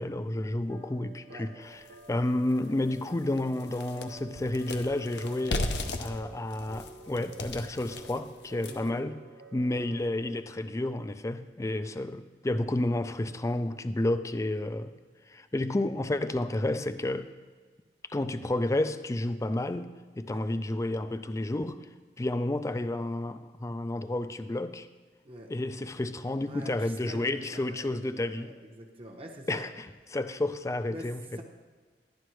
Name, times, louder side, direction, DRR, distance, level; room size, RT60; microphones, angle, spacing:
voice 1, 0.0-1.8 2.1-5.7 6.0-9.2 9.5-14.9 15.3-17.3 18.1-19.9 20.2-21.8 22.2-24.9 25.5-28.5 29.5-31.2, left 1 dB, 15° left, 11 dB, 0.4 m, -31 dB
sound 1, 0.7-10.3, right 3 dB, 70° right, 0.8 m, -50 dB
sound 2, 1.9-2.0 2.5-2.6 2.9-9.0, left 2 dB, 70° left, 0.7 m, -36 dB
voice 2, 8.6-9.0 11.8-11.9 20.2-20.4 25.2-25.5 26.5-29.6 30.9-31.1 31.4-31.5, right 1 dB, 30° right, 1 dB, 0.8 m, -45 dB
11.0 x 11.0 x 3.2 m, 1.5 s
head